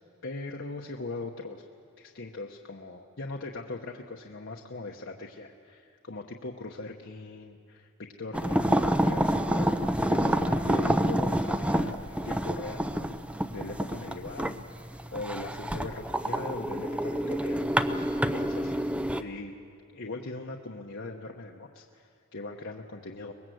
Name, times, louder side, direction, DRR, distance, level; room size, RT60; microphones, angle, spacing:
voice 1, 0.2-1.7 2.0-12.9 13.2-14.5 14.8-18.9 19.2-19.5 19.9-23.3, left 2 dB, 55° left, 0 dB, 1.1 m, -40 dB
sound 1, 8.3-19.2, right 1 dB, 5° right, 0.5 m, -28 dB
24.0 x 20.5 x 7.8 m, 2.3 s
head